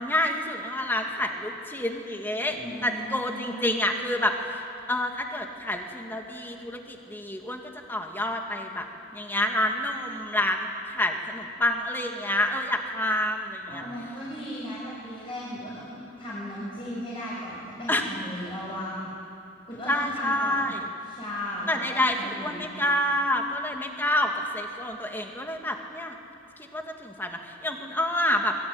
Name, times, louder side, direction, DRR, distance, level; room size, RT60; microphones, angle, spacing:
voice 1, 0.0-2.6 2.8-8.9 9.1-13.8 17.9-18.1 19.9-20.9 21.7-26.2 26.6-28.5, left 1 dB, 10° left, 3 dB, 2.1 m, -28 dB
voice 2, 2.5-3.7 13.7-15.9 16.2-19.0 19.7-20.7 21.1-22.7, equal, 30° left, -7 dB, 6.7 m, -36 dB
25.5 x 21.5 x 9.6 m, 2.6 s
head